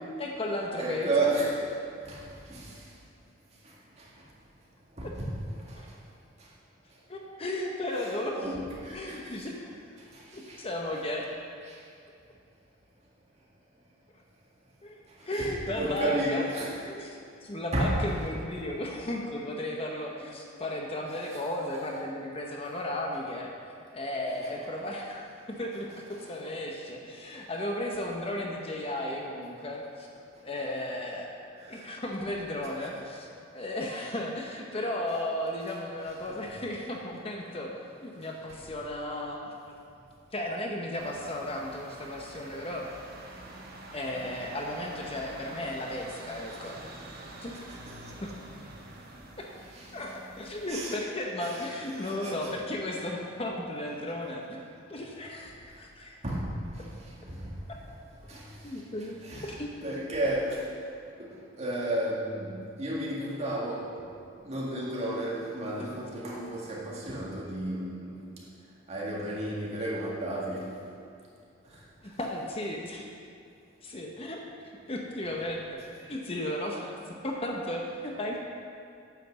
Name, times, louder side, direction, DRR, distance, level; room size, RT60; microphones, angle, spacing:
voice 1, 0.2-1.1 7.1-8.4 8.9-9.8 10.3-11.3 14.8-16.4 16.9-26.0 26.3-30.1 30.4-31.3 31.7-33.3 33.5-39.5 40.3-42.9 43.9-46.8 47.4-47.6 48.2-48.3 49.4-49.5 49.9-54.6 54.9-56.2 58.6-59.2 59.5-59.7 72.0-73.1 73.8-78.4, left 1 dB, 30° left, 0 dB, 0.9 m, -35 dB
voice 2, 0.8-1.7 2.0-2.9 4.0-4.1 5.0-5.4 5.7-5.9 8.0-9.4 10.1-10.6 11.7-11.8 15.3-16.8 17.7-18.0 21.2-21.4 24.4-24.5 26.1-26.3 31.6-31.9 32.8-32.9 36.3-36.4 46.6-46.7 47.7-47.8 49.7-49.9 50.7-51.0 51.4-51.7 52.0-52.5 56.2-56.9 57.2-57.5 58.3-58.6 59.0-59.6 59.8-60.7 61.2-63.9 64.4-68.3 68.9-70.7 71.7-71.8, right 1 dB, 35° right, -5 dB, 2.0 m, -33 dB
sound 1, 41.0-50.7, right 2 dB, 55° right, 1.2 m, -46 dB
9.3 x 5.9 x 6.9 m, 2.4 s
head